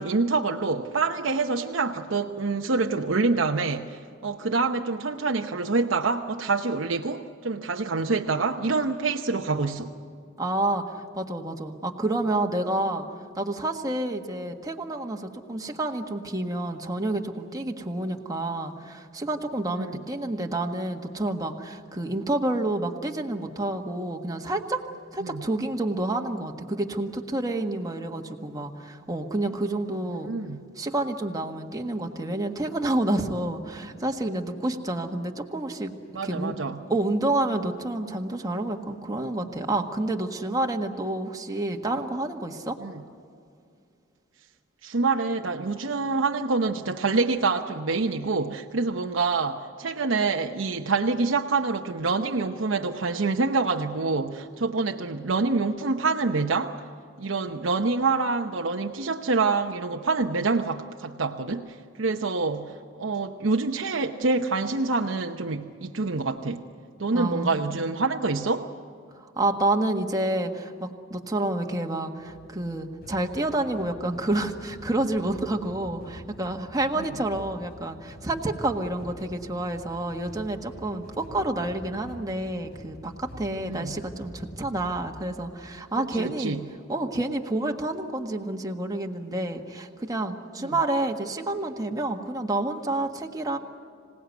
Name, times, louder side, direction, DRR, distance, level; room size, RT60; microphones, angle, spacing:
voice 1, 0.0-9.9 19.8-19.9 25.2-25.4 30.3-30.6 36.1-36.8 42.8-42.9 44.8-56.7 57.2-66.6 67.0-68.7 83.7-84.0 86.1-86.6 90.6-90.7, right 3 dB, 80° right, 3 dB, 0.9 m, -26 dB
voice 2, 10.4-13.0 13.3-24.8 25.1-30.3 30.8-35.9 36.2-36.5 36.9-42.8 67.1-67.8 69.1-86.6 86.9-93.6, right 2 dB, 20° right, 2 dB, 1.6 m, -29 dB
sound 1, 72.2-85.8, equal, 50° left, 3.8 m, -46 dB
26.0 x 18.0 x 9.3 m, 2.4 s
head